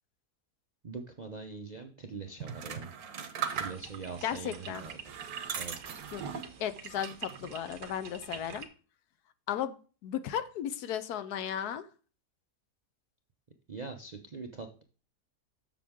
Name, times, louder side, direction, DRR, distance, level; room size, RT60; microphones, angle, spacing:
voice 1, 0.8-2.9 3.5-6.0 13.7-14.8, right 4 dB, 55° right, 4 dB, 0.4 m, -43 dB
sound 1, 2.4-4.1 4.7-6.5 6.9-7.5, right 8 dB, 70° right, 1.3 m, -39 dB
sound 2, 3.5-8.7, right 6 dB, 90° right, 1.6 m, -45 dB
voice 2, 4.2-4.8 6.1-6.2 6.6-8.7 9.5-9.8 10.0-11.8, left 9 dB, 75° left, 12 dB, 1.2 m, -35 dB
7.4 x 6.8 x 3.6 m, 0.37 s
omnidirectional pair, 1.7 m